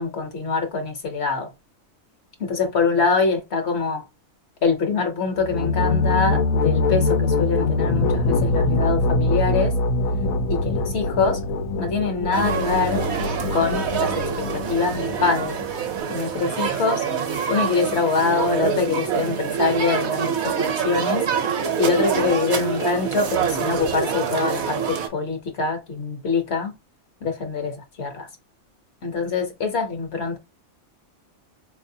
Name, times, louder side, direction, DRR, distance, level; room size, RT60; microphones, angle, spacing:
voice 1, 0.0-1.5 2.4-4.0 4.6-9.7 10.5-11.4 11.8-13.1 13.5-15.6 16.1-17.1 17.5-21.3 21.8-26.7 27.2-28.3 29.0-30.4, left 4 dB, 55° left, 1.1 m, -24 dB
sound 1, 5.3-16.0, left 2 dB, 90° left, 1.0 m, -23 dB
sound 2, 12.3-25.1, right 7 dB, 60° right, 1.0 m, -26 dB
4.4 x 2.7 x 2.6 m
omnidirectional pair, 1.4 m